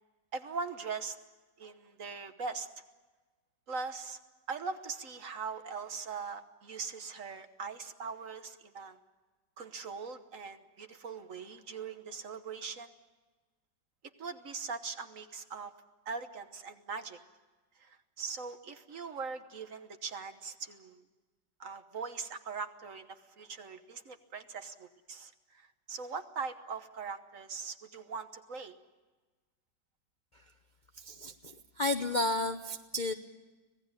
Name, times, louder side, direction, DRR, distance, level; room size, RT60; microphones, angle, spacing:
voice 1, 0.3-1.2 1.6-2.7 3.7-4.2 4.5-9.0 9.6-12.9 14.2-15.7 16.0-17.2 17.8-21.0 21.6-28.7, right 5 dB, 50° right, 9 dB, 1.4 m, -41 dB
voice 2, 31.8-33.1, left 2 dB, 50° left, 8 dB, 0.5 m, -31 dB
25.5 x 18.0 x 8.9 m, 1.3 s
omnidirectional pair, 2.0 m